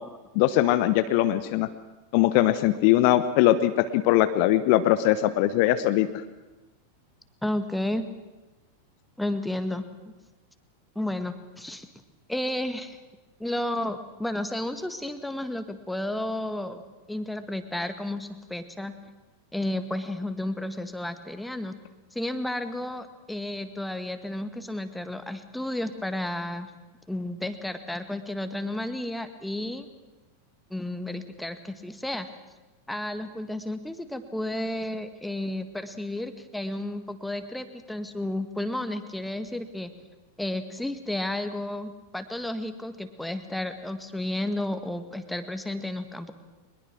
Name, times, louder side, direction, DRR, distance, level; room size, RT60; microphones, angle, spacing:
voice 1, 0.3-1.7 2.1-6.1, left 14 dB, 45° left, 12 dB, 0.9 m, -21 dB
voice 2, 7.4-8.0 9.2-10.1 10.9-11.9 12.3-13.0 13.4-16.8 17.1-18.9 19.5-21.7 22.1-26.7 27.1-29.9 30.7-32.3 32.9-39.9 40.4-46.3, left 1 dB, 5° left, 9 dB, 1.7 m, -32 dB
23.0 x 21.0 x 6.2 m, 1.1 s
figure-of-eight pair, 90°, 0 cm